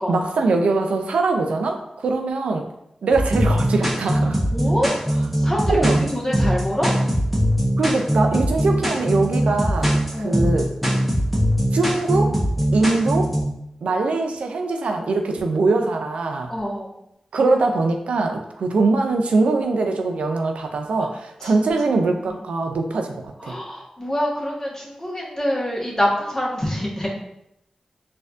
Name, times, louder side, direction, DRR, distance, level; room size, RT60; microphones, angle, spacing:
voice 1, 0.1-2.6 3.0-4.4 5.7-6.1 7.8-10.7 11.7-12.4 12.7-13.3 13.8-16.5 17.3-23.2 23.4-23.5, right 3 dB, 90° right, 4 dB, 0.3 m, -22 dB
sound 1, 3.1-13.4, equal, ahead, 0.9 m, -21 dB
voice 2, 4.5-6.9 10.1-10.4 16.5-16.9 21.4-21.5 22.3-22.4 23.4-27.1, equal, 25° left, -3 dB, 1.1 m, -26 dB
4.2 x 2.5 x 2.4 m, 0.81 s
cardioid pair, 45°, 2 cm